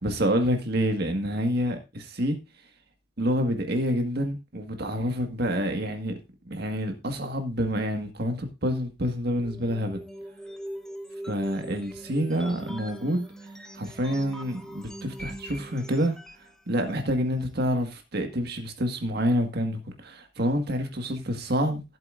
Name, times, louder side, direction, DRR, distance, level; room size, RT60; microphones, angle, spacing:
voice 1, 0.0-2.4 3.2-6.1 6.5-10.0 11.3-13.3 13.7-16.2 16.7-22.0, equal, 60° right, 1.7 m, -27 dB
sound 1, 9.4-16.5, right 1 dB, 5° left, 1.1 m, -41 dB
15.0 x 7.7 x 2.6 m
head